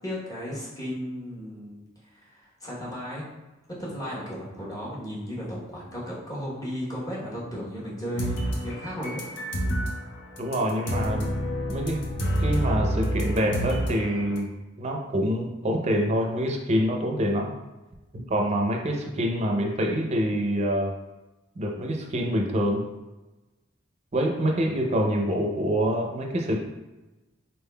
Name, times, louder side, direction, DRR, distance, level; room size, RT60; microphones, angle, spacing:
voice 1, 0.0-1.8 2.1-3.2 3.8-9.3, equal, 20° left, -7 dB, 1.0 m, -34 dB
sound 1, 8.2-10.0 10.4-14.4, equal, 65° left, 0.7 m, -28 dB
voice 2, 10.4-11.3 11.7-12.0 12.4-14.5 14.8-17.5 18.1-20.9 21.6-22.8 24.1-26.6, equal, 35° right, 2 dB, 0.5 m, -26 dB
4.1 x 3.6 x 2.2 m, 1.1 s
head